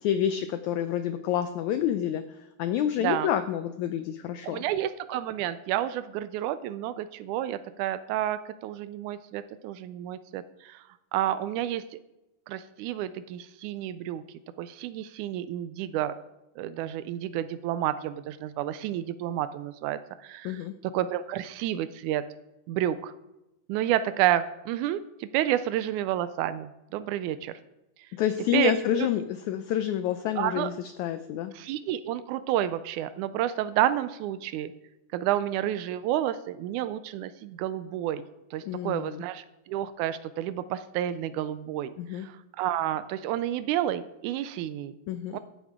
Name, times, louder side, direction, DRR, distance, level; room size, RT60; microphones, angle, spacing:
voice 1, 0.0-4.6 20.4-20.7 28.1-31.5 38.6-39.2 42.0-42.3 45.1-45.4, left 10 dB, 90° left, 9 dB, 1.6 m, -28 dB
voice 2, 4.4-10.8 11.1-11.8 12.5-14.2 14.6-16.1 16.6-22.2 22.7-23.1 23.7-27.6 28.5-29.1 30.4-30.7 31.5-34.7 35.1-38.2 38.5-44.9 45.3-45.4, right 12 dB, 85° right, 13 dB, 1.7 m, -30 dB
14.5 x 9.3 x 3.6 m, 0.93 s
omnidirectional pair, 4.0 m